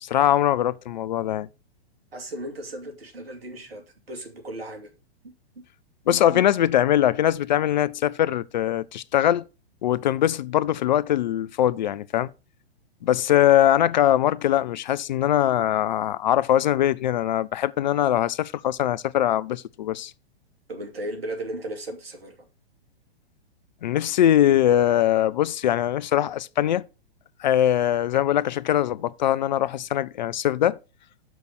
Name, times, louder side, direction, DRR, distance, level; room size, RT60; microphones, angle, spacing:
voice 1, 0.0-1.5 6.1-9.5 9.8-12.3 13.0-20.1 23.8-26.8 27.4-30.8, left 11 dB, 45° left, 0.4 m, -22 dB
voice 2, 2.1-4.9 5.2-5.3 6.3-6.4 20.7-22.5, right 1 dB, 70° right, 2.6 m, -36 dB
6.7 x 6.1 x 6.3 m
figure-of-eight pair, 110°, 31 cm